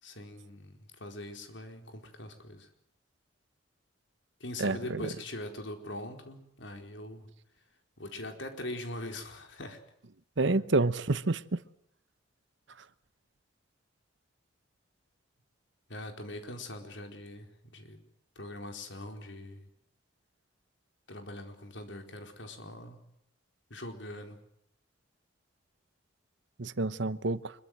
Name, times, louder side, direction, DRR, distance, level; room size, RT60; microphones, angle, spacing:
voice 1, 0.0-2.7 4.4-7.3 8.0-9.8 15.9-18.0 18.4-19.7 21.1-23.0 23.7-24.4, left 1 dB, 70° left, 4.4 m, -42 dB
voice 2, 4.6-5.1 10.4-11.6 26.6-27.5, right 2 dB, 70° right, 1.0 m, -28 dB
25.5 x 23.0 x 7.9 m
head